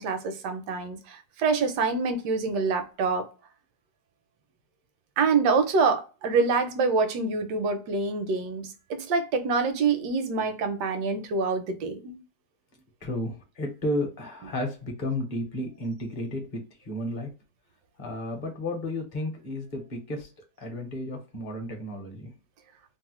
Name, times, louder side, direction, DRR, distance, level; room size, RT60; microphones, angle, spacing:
voice 1, 0.0-3.2 5.2-12.2 14.4-14.5, right 4 dB, 80° right, 1.2 m, -26 dB
voice 2, 13.0-17.3 18.0-20.3 20.6-22.3, left 1 dB, 40° left, 0.7 m, -33 dB
3.1 x 2.1 x 3.0 m
omnidirectional pair, 1.8 m